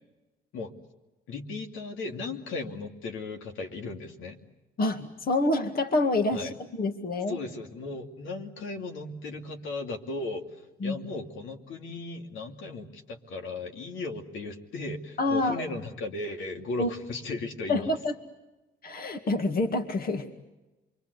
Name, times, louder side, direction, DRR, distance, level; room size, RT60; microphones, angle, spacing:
voice 1, 1.3-4.4 6.3-6.6 7.3-17.9, left 3 dB, 80° left, 4 dB, 2.7 m, -36 dB
voice 2, 4.8-7.4 10.8-11.0 15.2-15.6 16.8-16.9 17.7-18.1 18.8-20.3, left 2 dB, 50° left, 6 dB, 2.1 m, -27 dB
28.0 x 23.5 x 8.2 m, 1.1 s
cardioid pair, 90°, 20 cm